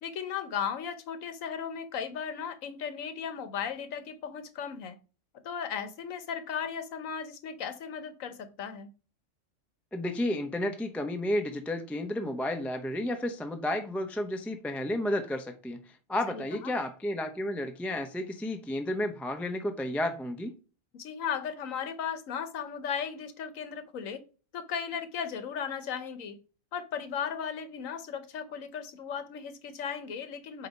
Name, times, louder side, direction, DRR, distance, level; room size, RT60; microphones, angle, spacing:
voice 1, 0.0-5.0 5.4-8.9 16.3-16.7 20.9-24.2 24.5-26.4 26.7-30.7, left 7 dB, 80° left, 1.3 m, -36 dB
voice 2, 9.9-15.8 16.1-20.5, left 1 dB, ahead, 0.3 m, -32 dB
7.8 x 2.8 x 5.3 m
omnidirectional pair, 1.4 m